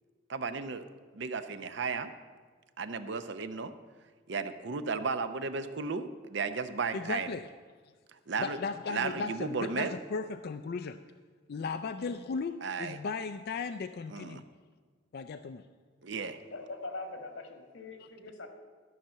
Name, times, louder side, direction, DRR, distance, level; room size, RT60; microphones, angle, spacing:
voice 1, 0.3-0.8 1.1-2.1 2.8-3.7 4.3-7.3 8.3-8.6 8.9-10.0 12.6-13.0 14.1-14.4 16.0-16.4, right 4 dB, 65° right, 10 dB, 0.7 m, -34 dB
voice 2, 6.9-7.4 8.4-11.0 11.5-14.4 15.1-15.6, left 4 dB, 55° left, 9 dB, 0.4 m, -36 dB
voice 3, 16.5-18.5, left 2 dB, 90° left, 5 dB, 1.7 m, -42 dB
13.5 x 5.7 x 7.5 m, 1.5 s
head